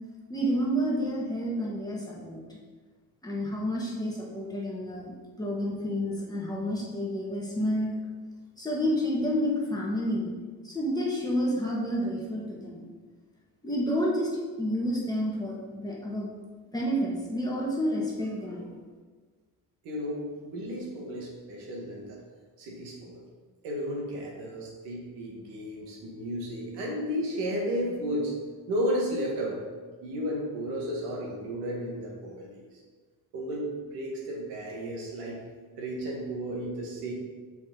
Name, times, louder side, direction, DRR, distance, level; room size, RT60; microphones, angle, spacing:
voice 1, 0.3-2.4 3.2-5.1 5.4-8.0 8.6-10.3 10.6-12.8 13.6-14.3 14.6-16.3 16.7-18.7, equal, 10° left, -4 dB, 1.4 m, -29 dB
voice 2, 19.8-22.2 22.6-23.2 23.6-28.3 28.7-29.6 30.0-32.6 33.3-35.4 35.8-37.1, equal, 90° right, -2 dB, 1.7 m, -33 dB
6.2 x 4.8 x 3.8 m, 1.5 s
cardioid pair, 115°, 40 cm